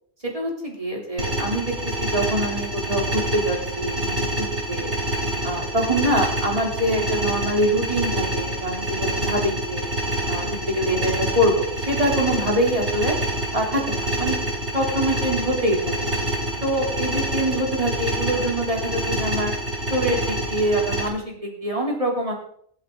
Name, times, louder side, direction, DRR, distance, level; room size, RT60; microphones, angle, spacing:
voice 1, 0.3-1.7 2.0-4.9 5.4-9.9 10.3-13.2 13.5-14.4 14.7-16.1 16.6-19.5 19.9-22.3, right 1 dB, 30° right, -1 dB, 3.6 m, -24 dB
sound 1, 1.2-21.1, right 1 dB, 80° right, 3.6 m, -27 dB
24.0 x 8.2 x 4.0 m, 0.62 s
omnidirectional pair, 1.2 m